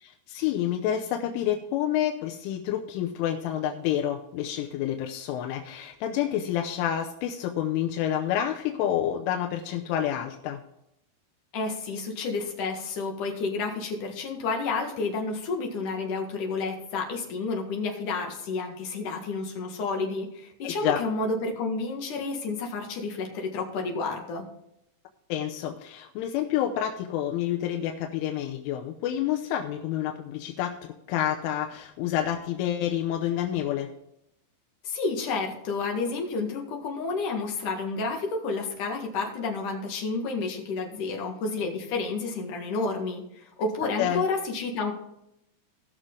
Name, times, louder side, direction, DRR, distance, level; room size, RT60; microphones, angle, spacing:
voice 1, 0.0-10.6 20.6-21.0 25.3-33.9 44.0-44.3, left 11 dB, 90° left, 3 dB, 3.3 m, -28 dB
voice 2, 11.5-24.5 34.8-44.9, left 3 dB, 55° left, 1 dB, 2.6 m, -30 dB
18.5 x 6.4 x 3.8 m, 0.81 s
omnidirectional pair, 5.5 m